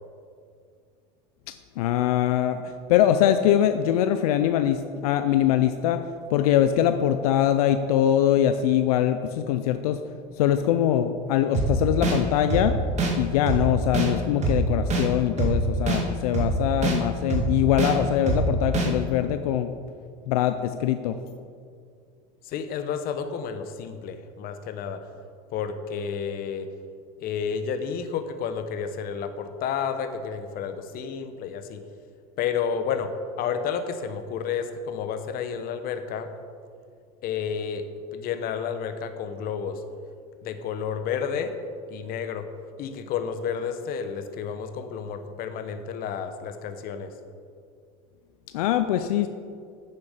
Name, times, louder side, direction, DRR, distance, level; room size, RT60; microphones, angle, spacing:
voice 1, 1.5-6.0 6.3-10.0 10.4-12.8 13.2-19.7 20.3-21.2 48.5-49.3, left 10 dB, 90° left, 9 dB, 0.5 m, -23 dB
sound 1, 11.5-11.7 12.0-12.2 12.5-12.6 13.0-13.1 13.5-13.6 13.9-14.1 14.4-14.6 14.9-15.0 15.4-15.5 15.9-16.0 16.3-16.5 16.8-17.0 17.3-17.4 17.8-17.9 18.3-18.4 18.7-18.9, right 3 dB, 40° right, 2.1 m, -23 dB
voice 2, 22.4-25.0 25.5-26.7 27.2-31.8 32.4-33.1 33.4-36.3 37.2-37.9 38.1-39.8 40.4-41.5 41.9-42.5 42.8-47.1, left 7 dB, 55° left, 9 dB, 0.9 m, -31 dB
10.0 x 6.9 x 5.1 m, 2.2 s
supercardioid pair, 100°, 19 cm